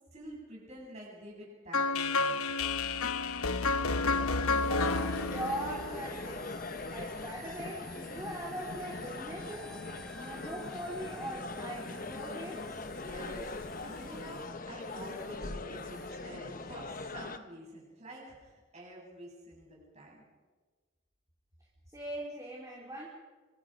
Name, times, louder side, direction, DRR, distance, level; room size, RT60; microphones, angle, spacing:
voice 1, 0.1-2.4 12.9-20.2, right 1 dB, 30° right, -3 dB, 8.0 m, -48 dB
sound 1, 1.7-6.7, left 3 dB, 85° left, 1.1 m, -31 dB
sound 2, 3.9-17.4, left 3 dB, 40° left, 0.9 m, -42 dB
sound 3, 4.4-15.4 15.7-16.2, left 1 dB, 5° left, 1.4 m, -51 dB
voice 2, 4.6-6.5 6.9-9.8 10.1-12.8 21.9-23.1, right 1 dB, 15° right, -3 dB, 3.1 m, -41 dB
25.5 x 24.5 x 5.2 m, 1.4 s
head